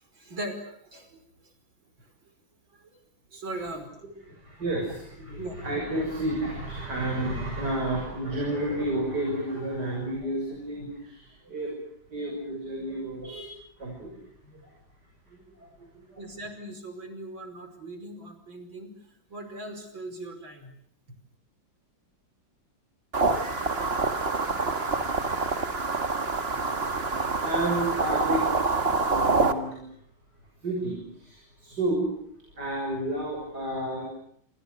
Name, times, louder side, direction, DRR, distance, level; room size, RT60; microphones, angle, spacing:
voice 1, 0.1-1.2 2.0-2.1 2.8-2.9 3.3-4.0 5.4-5.6 16.2-18.9 19.3-20.7, right 1 dB, 80° right, 7 dB, 6.0 m, -39 dB
voice 2, 4.3-11.7 12.1-14.2 14.5-14.7 15.3-16.2 26.5-28.7 29.0-29.8 30.6-32.1 32.6-34.1, right 1 dB, 55° right, 0 dB, 7.4 m, -31 dB
sound 1, 23.1-29.5, right 3 dB, 30° right, 2.1 m, -26 dB
28.5 x 28.0 x 6.6 m, 0.67 s
omnidirectional pair, 2.1 m